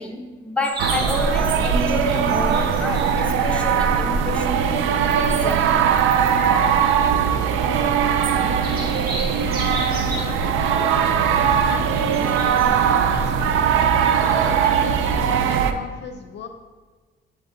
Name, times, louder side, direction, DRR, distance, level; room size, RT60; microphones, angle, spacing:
voice 1, 0.0-4.8 5.3-5.8, equal, 5° left, 1 dB, 0.9 m, -28 dB
sound 1, 0.6-13.4, right 1 dB, 50° right, 1.8 m, -36 dB
sound 2, 0.8-15.7, right 7 dB, 85° right, 0.4 m, -20 dB
voice 2, 7.0-8.8 9.4-13.6 14.2-16.5, left 4 dB, 60° left, 6 dB, 0.6 m, -37 dB
8.4 x 3.2 x 3.9 m, 1.4 s
cardioid pair, 90°, 20 cm